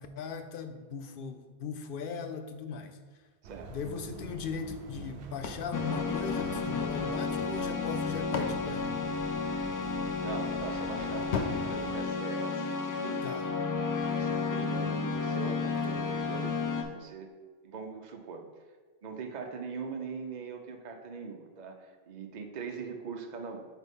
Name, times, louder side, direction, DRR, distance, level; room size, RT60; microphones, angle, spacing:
voice 1, 0.0-3.0 3.7-8.9 13.2-13.5, left 5 dB, 60° left, 7 dB, 0.7 m, -39 dB
sound 1, 3.4-11.9, right 5 dB, 75° right, 0.9 m, -47 dB
sound 2, 5.4-7.0 7.8-9.8 11.3-12.9, left 5 dB, 85° left, 1.0 m, -39 dB
sound 3, 5.7-16.8, left 4 dB, 35° left, 0.3 m, -32 dB
voice 2, 10.2-13.2 14.1-17.3 17.6-18.5 19.0-23.7, right 4 dB, 45° right, 4 dB, 0.7 m, -41 dB
7.9 x 4.1 x 3.6 m, 1.4 s
omnidirectional pair, 1.1 m